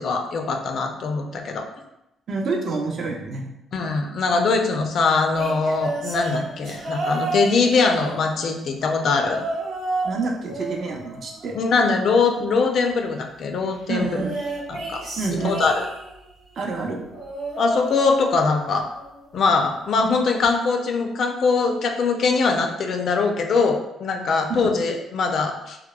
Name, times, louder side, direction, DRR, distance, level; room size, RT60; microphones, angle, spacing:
voice 1, 0.0-1.7 3.7-9.4 11.5-14.2 14.7-15.0 15.3-15.9 17.6-18.9 19.3-25.8, left 4 dB, 60° left, 4 dB, 0.3 m, -22 dB
voice 2, 2.3-3.5 10.0-11.5 13.9-14.4 15.1-15.6 16.6-17.0 24.5-24.6, right 3 dB, 55° right, 0 dB, 0.5 m, -27 dB
sound 1, 5.3-8.6 9.2-10.2 10.4-12.0 14.0-16.2 17.1-18.6 18.9-19.3 20.4-20.5, right 2 dB, 75° right, 0.8 m, -31 dB
2.8 x 2.0 x 2.2 m, 0.87 s
cardioid pair, 90°, 0 cm